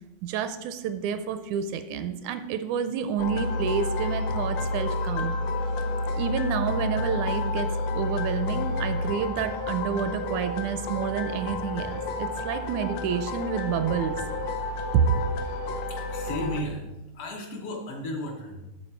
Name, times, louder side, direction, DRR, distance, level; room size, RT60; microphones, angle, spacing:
voice 1, 0.2-5.3 6.2-11.9 12.2-14.2 14.9-15.1, right 7 dB, 80° right, 9 dB, 1.9 m, -29 dB
sound 1, 3.2-16.6, left 2 dB, 80° left, 2.1 m, -30 dB
voice 2, 15.9-16.9 17.1-18.6, left 1 dB, 60° left, 0 dB, 1.8 m, -34 dB
12.5 x 4.4 x 4.4 m, 1.0 s
omnidirectional pair, 3.5 m